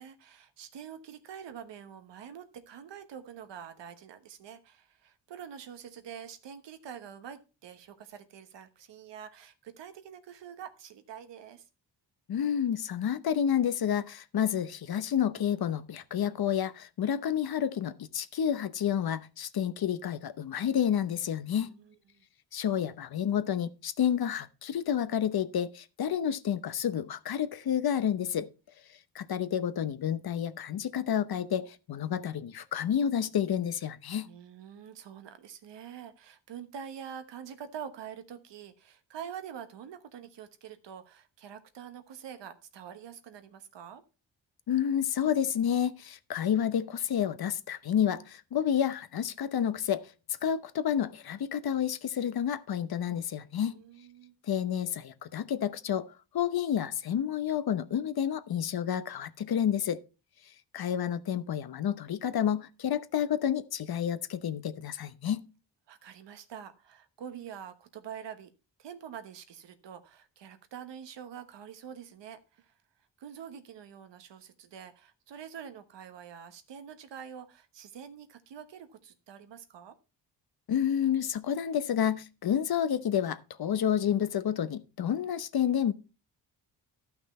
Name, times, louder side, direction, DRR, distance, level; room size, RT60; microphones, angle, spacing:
voice 1, 0.0-11.6 21.5-22.2 34.2-44.0 53.5-54.3 65.9-68.5 68.8-72.7 73.2-79.9, right 8 dB, 85° right, 1.3 m, -46 dB
voice 2, 12.3-21.7 22.5-28.5 29.1-34.3 44.7-50.0 50.4-53.8 54.5-56.1 56.3-60.0 60.7-65.5 80.7-85.9, left 9 dB, 60° left, 0.9 m, -30 dB
12.0 x 5.9 x 4.2 m
cardioid pair, 80°, 42 cm